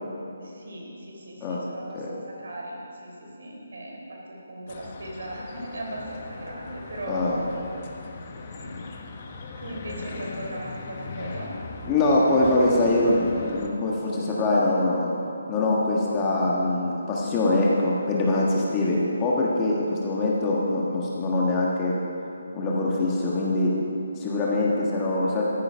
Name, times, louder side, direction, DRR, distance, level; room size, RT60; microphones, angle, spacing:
voice 1, 0.4-7.4 8.5-8.8 9.6-11.5, right 1 dB, 75° right, -1 dB, 3.7 m, -38 dB
sound 1, 4.7-13.7, left 4 dB, 35° left, 1.1 m, -39 dB
voice 2, 7.1-7.4 11.8-15.1 15.5-22.0 22.5-23.7 24.2-25.4, left 2 dB, 15° left, -4 dB, 1.5 m, -23 dB
13.5 x 9.8 x 5.6 m, 2.7 s
hypercardioid pair, 165°, 0 cm